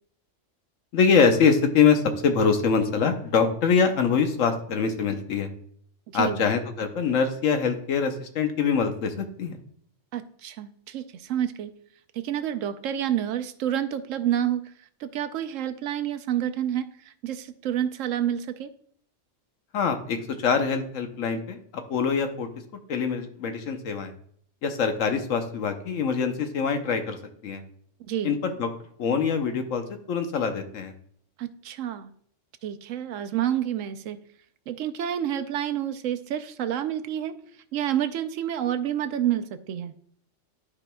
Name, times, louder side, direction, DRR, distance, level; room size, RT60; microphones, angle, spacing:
voice 1, 0.9-5.5 6.1-9.6 19.7-22.5 22.9-24.1 24.6-27.2 27.4-27.6 28.2-28.7 29.0-30.9, left 6 dB, 85° left, 7 dB, 1.2 m, -24 dB
voice 2, 6.1-6.5 10.1-11.7 12.2-14.6 15.0-16.9 17.2-18.7 28.1-28.4 31.4-32.1 32.6-34.2 34.7-37.3 37.7-39.9, right 10 dB, 85° right, 9 dB, 1.0 m, -28 dB
12.0 x 4.9 x 2.3 m, 0.63 s
omnidirectional pair, 1.3 m